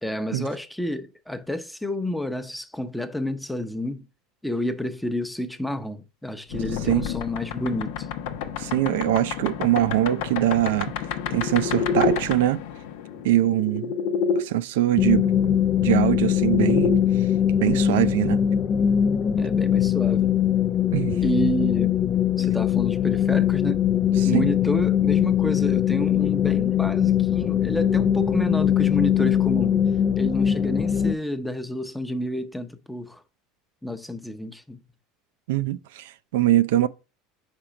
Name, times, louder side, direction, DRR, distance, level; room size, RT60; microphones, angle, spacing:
voice 1, 0.0-4.1 4.4-8.1 19.4-20.3 21.2-22.0 22.4-23.8 24.2-29.8 30.2-33.2 33.8-34.8, left 1 dB, 5° left, 0.7 m, -29 dB
sound 1, 6.5-14.4 15.7-17.0, left 6 dB, 80° left, 0.7 m, -29 dB
voice 2, 8.6-10.9 11.3-12.6 13.2-13.9 14.4-16.9 17.6-18.4 20.9-21.2 24.2-24.5 35.5-36.9, right 14 dB, 85° right, 0.3 m, -23 dB
sound 2, 15.0-31.2, left 9 dB, 35° left, 0.3 m, -21 dB
4.9 x 4.4 x 5.0 m
supercardioid pair, 115°, 0 cm